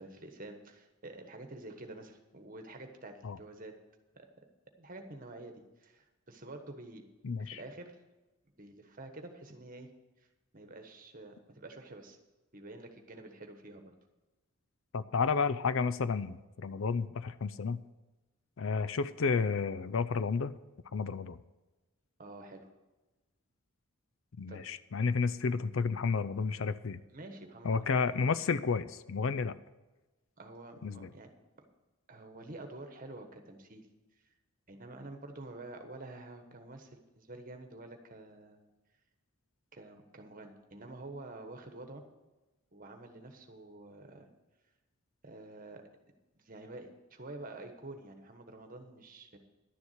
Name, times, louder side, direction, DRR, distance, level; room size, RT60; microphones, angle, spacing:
voice 1, 0.0-3.7 4.1-4.2 4.8-7.0 7.4-7.9 8.6-9.9 10.2-10.3 10.5-12.2 12.5-13.9 22.2-22.7 24.5-24.6 27.1-28.3 30.4-31.3 32.1-33.9 34.7-38.6 39.7-42.0 42.7-44.3 45.2-45.8 46.3-49.4, right 2 dB, 40° right, 5 dB, 1.3 m, -48 dB
voice 2, 7.2-7.6 14.9-17.8 18.6-20.6 20.9-21.4 24.4-27.0 27.6-29.5 30.8-31.1, left 5 dB, 60° left, 15 dB, 0.5 m, -31 dB
11.0 x 7.1 x 8.0 m, 1.1 s
head